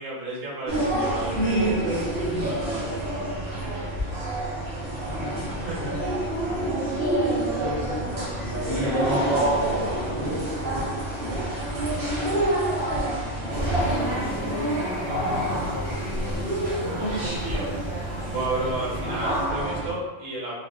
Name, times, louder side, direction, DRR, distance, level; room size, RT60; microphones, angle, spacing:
voice 1, 0.0-3.8 5.3-5.9 7.7-7.8 8.7-9.3 12.1-12.2 13.4-13.7 17.1-17.7 18.3-20.5, right 2 dB, 90° right, -5 dB, 1.5 m, -34 dB
sound 1, 0.7-19.9, right 1 dB, 55° right, 1.3 m, -27 dB
voice 2, 5.6-6.1 7.6-8.3 13.4-14.0 14.3-14.6 15.0-16.6, left 3 dB, 30° left, -9 dB, 0.6 m, -37 dB
sound 2, 13.5-19.4, left 5 dB, 75° left, 0.4 m, -40 dB
3.9 x 2.5 x 2.4 m, 1.1 s
omnidirectional pair, 1.3 m